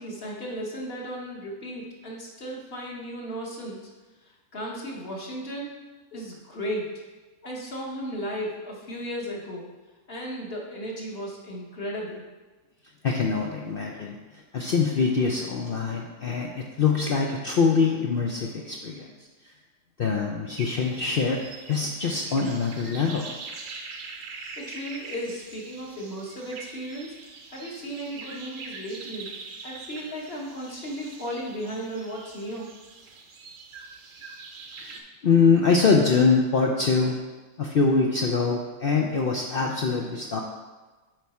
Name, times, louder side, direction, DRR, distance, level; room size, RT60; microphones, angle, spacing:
voice 1, 0.0-3.9 4.2-5.7 6.1-7.0 7.4-9.6 10.1-12.3 24.3-32.7, equal, 45° left, -3 dB, 1.3 m, -35 dB
voice 2, 13.0-14.2 14.5-19.1 20.0-21.4 21.7-23.3 34.8-37.2 37.6-40.4, left 5 dB, 65° left, 0 dB, 0.5 m, -24 dB
sound 1, 20.6-35.0, right 4 dB, 65° right, 1.1 m, -43 dB
7.8 x 4.7 x 4.2 m, 1.2 s
omnidirectional pair, 1.6 m